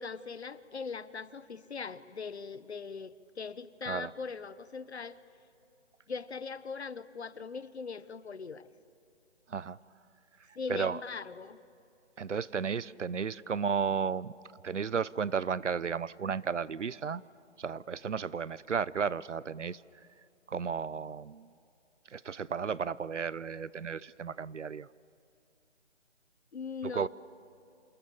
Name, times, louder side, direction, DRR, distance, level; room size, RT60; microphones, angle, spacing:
voice 1, 0.0-5.2 6.1-8.7 10.5-11.6 26.5-27.1, left 5 dB, 65° left, 16 dB, 1.2 m, -40 dB
voice 2, 12.2-14.3 14.6-17.2 17.6-19.8 20.5-21.5 22.1-24.9 26.8-27.1, right 6 dB, 90° right, 20 dB, 0.8 m, -33 dB
29.5 x 27.5 x 7.2 m, 2.7 s
hypercardioid pair, 170°, 35 cm